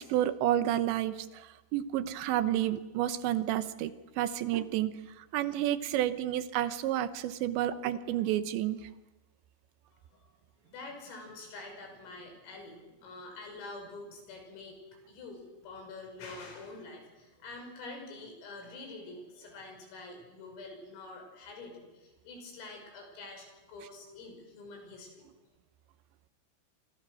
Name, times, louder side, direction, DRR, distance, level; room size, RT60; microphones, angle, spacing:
voice 1, 0.0-4.9 5.2-8.8, right 12 dB, 75° right, 12 dB, 2.9 m, -30 dB
voice 2, 9.9-10.3 10.7-25.3, left 3 dB, 85° left, 3 dB, 8.7 m, -46 dB
28.0 x 26.5 x 6.3 m, 1.1 s
omnidirectional pair, 5.8 m